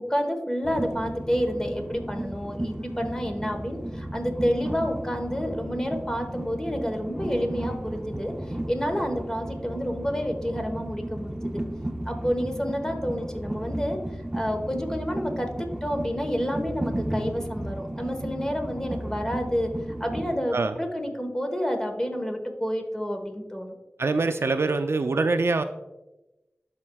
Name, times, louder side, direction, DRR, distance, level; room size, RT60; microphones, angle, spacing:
voice 1, 0.0-8.3 8.7-11.6 12.0-14.0 14.3-19.7 20.0-23.8, equal, 15° left, 4 dB, 1.2 m, -29 dB
Train, 0.6-20.4, right 1 dB, 15° right, 0.6 m, -34 dB
voice 2, 24.0-25.6, right 3 dB, 70° right, 9 dB, 0.4 m, -24 dB
12.0 x 4.3 x 2.3 m, 1.0 s
wide cardioid pair, 45°, 4 cm